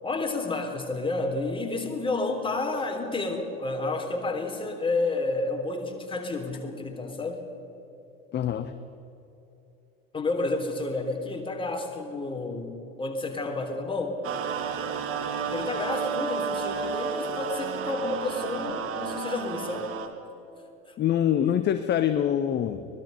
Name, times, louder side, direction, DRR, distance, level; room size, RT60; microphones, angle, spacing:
voice 1, 0.0-7.4 10.1-14.2 15.5-19.9 20.9-21.0, left 2 dB, 15° left, 3 dB, 3.4 m, -30 dB
voice 2, 8.3-8.7 21.0-22.9, left 10 dB, 35° left, 11 dB, 1.0 m, -25 dB
sound 1, 14.2-20.1, right 6 dB, 45° right, 2.1 m, -31 dB
24.0 x 19.5 x 5.6 m, 2.9 s
figure-of-eight pair, 65°, 32 cm